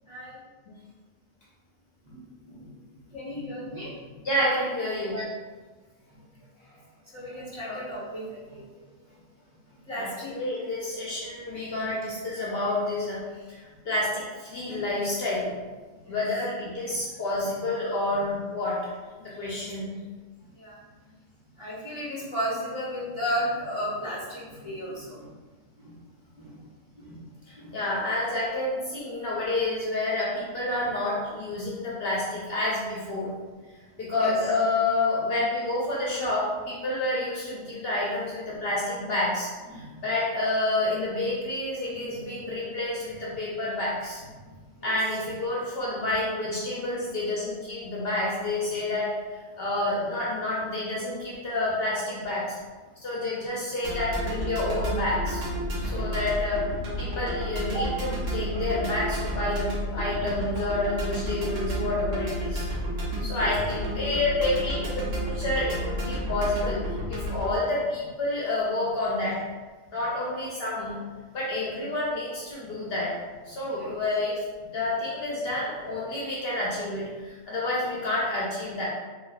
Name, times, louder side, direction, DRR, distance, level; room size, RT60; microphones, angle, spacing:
voice 1, 0.0-0.4 2.0-2.7 3.0-4.3 5.1-5.2 7.1-8.6 9.9-10.3 16.0-16.2 16.9-17.0 18.1-18.2 19.3-19.7 20.6-20.8 21.6-25.3 25.8-26.0 26.4-26.6 27.0-27.2 27.6-27.8 31.6-31.7 34.1-34.3 39.7-40.0 41.9-42.3 44.4-44.9 49.6-49.7 57.6-57.9 63.3-63.5 72.7-72.8 73.5-73.9, equal, 25° right, -8 dB, 0.9 m, -35 dB
voice 2, 4.2-5.2 7.3-7.4 7.7-7.8 9.9-13.2 13.5-15.5 16.1-18.8 19.2-20.0 27.5-33.3 34.0-44.2 44.8-49.1 49.6-52.6 53.0-55.4 55.9-56.7 57.0-62.7 63.2-69.4 69.9-71.0 71.3-73.1 73.5-74.4 74.7-78.8, left 2 dB, 55° left, -6 dB, 0.8 m, -29 dB
sound 1, 53.8-67.6, equal, 75° right, 1.3 m, -31 dB
3.3 x 3.0 x 2.4 m, 1.3 s
omnidirectional pair, 1.3 m